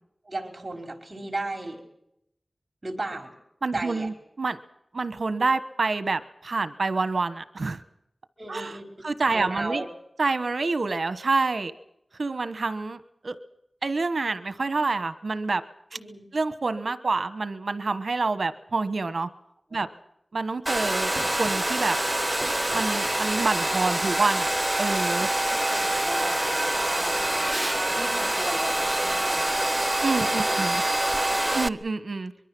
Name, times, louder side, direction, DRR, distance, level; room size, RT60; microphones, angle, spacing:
voice 1, 0.2-1.8 2.8-3.3 3.7-4.1 8.4-9.9 15.9-16.3 19.7-19.9 22.0-22.3 25.2-27.2 27.9-29.8 30.2-31.1, right 2 dB, 45° right, 4 dB, 5.1 m, -36 dB
voice 2, 3.6-4.1 4.4-4.6 4.9-7.8 8.5-8.7 9.0-9.8 10.2-11.7 12.2-13.3 13.8-15.6 16.3-19.3 19.7-19.9 20.3-21.1 21.4-22.0 22.7-24.5 24.8-25.3 30.0-30.8 31.5-32.3, right 3 dB, 75° right, 12 dB, 1.2 m, -27 dB
Domestic sounds home sounds, 20.7-31.7, right 1 dB, 20° right, 0.9 m, -25 dB
23.5 x 23.0 x 6.2 m, 0.78 s
wide cardioid pair, 50°, 0 cm